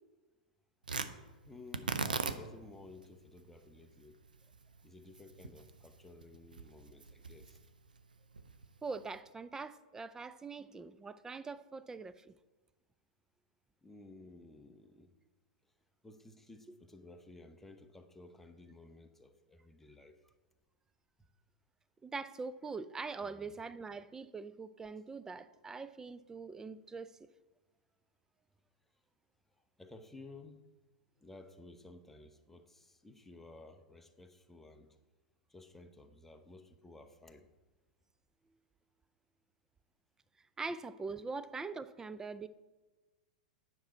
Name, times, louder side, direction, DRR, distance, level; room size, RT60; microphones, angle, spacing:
Tearing, 0.8-9.2, right 4 dB, 80° right, 0.5 m, -42 dB
voice 1, 1.4-4.2 4.8-7.6 13.8-15.1 16.0-20.2 23.2-23.5 29.8-30.6 31.2-35.0 35.5-37.5, left 2 dB, 5° left, 0.7 m, -55 dB
voice 2, 8.8-12.3 22.0-27.3 40.6-42.5, right 4 dB, 10° right, 0.3 m, -43 dB
9.6 x 5.9 x 4.3 m
figure-of-eight pair, 100°, 4 cm